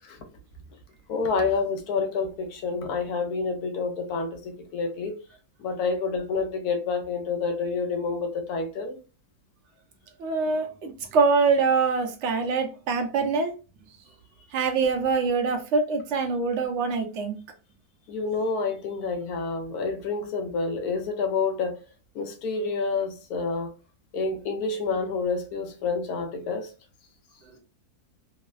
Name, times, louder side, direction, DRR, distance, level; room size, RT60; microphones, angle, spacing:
voice 1, 1.1-5.1 5.6-9.0 18.1-21.8 22.1-23.7 24.1-26.7, left 4 dB, 80° left, 1.1 m, -28 dB
voice 2, 10.2-13.5 14.5-17.4, right 4 dB, 65° right, 0.7 m, -24 dB
3.1 x 2.0 x 2.2 m
omnidirectional pair, 1.6 m